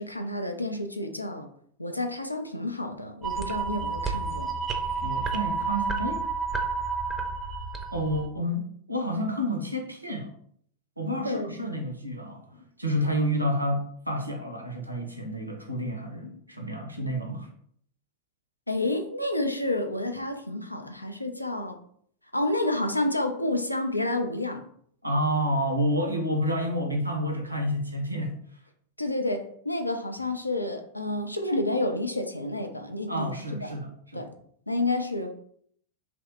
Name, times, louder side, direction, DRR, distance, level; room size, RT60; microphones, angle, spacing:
voice 1, 0.0-1.5 1.8-4.5 11.2-11.6 18.7-21.8 22.3-24.6 29.0-33.7 34.1-34.3 34.7-35.3, left 2 dB, 85° left, 0.3 m, -29 dB
sound 1, 3.2-8.3, right 4 dB, 15° right, 0.4 m, -30 dB
voice 2, 5.0-6.2 7.9-10.3 11.0-17.5 25.0-28.3 33.1-34.2, equal, 85° right, 0.4 m, -29 dB
2.8 x 2.0 x 3.1 m
figure-of-eight pair, 90°, 0 cm